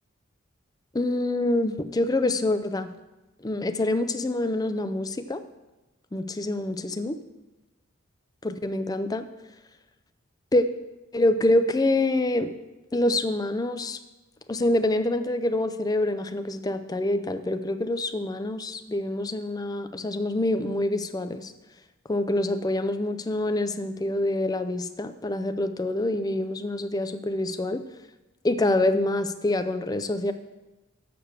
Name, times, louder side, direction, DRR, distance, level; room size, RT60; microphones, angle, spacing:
voice 1, 0.9-2.9 3.4-5.4 6.1-7.2 8.4-9.2 10.5-10.7 11.1-12.5 12.9-14.0 14.5-21.5 22.1-27.8 28.4-30.3, left 1 dB, 20° left, 10 dB, 0.4 m, -26 dB
7.2 x 6.8 x 6.6 m, 1.1 s
head